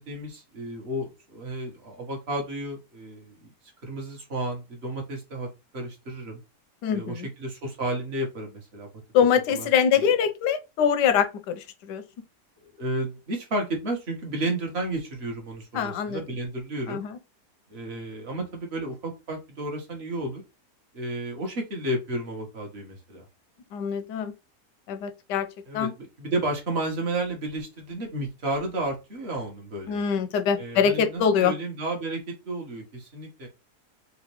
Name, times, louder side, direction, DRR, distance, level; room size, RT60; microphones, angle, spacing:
voice 1, 0.0-3.5 3.8-5.5 5.7-6.4 6.9-8.9 9.5-9.7 9.9-10.1 12.8-17.0 17.7-20.4 20.9-23.2 25.7-30.0 30.6-33.5, right 1 dB, 40° right, 1.3 m, -32 dB
voice 2, 6.8-7.3 9.1-12.0 15.7-16.2 16.9-17.1 23.7-24.3 24.9-25.5 25.7-25.9 29.9-31.5, left 7 dB, 90° left, 1.3 m, -24 dB
4.0 x 2.5 x 3.0 m
omnidirectional pair, 1.8 m